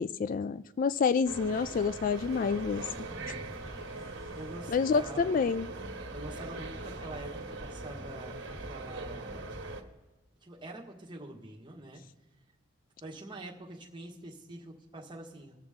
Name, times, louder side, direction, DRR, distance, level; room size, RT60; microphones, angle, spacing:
voice 1, 0.0-2.8 4.7-5.7, left 5 dB, 45° left, 15 dB, 0.3 m, -28 dB
sound 1, 1.2-9.8, right 2 dB, 80° right, 1.4 m, -41 dB
sound 2, 2.1-5.8, equal, 25° left, 3.7 m, -51 dB
voice 2, 4.3-5.6 6.1-9.5 10.4-12.0 13.0-15.6, right 2 dB, 25° right, 0 dB, 1.6 m, -45 dB
21.0 x 7.3 x 3.7 m, 1.2 s
head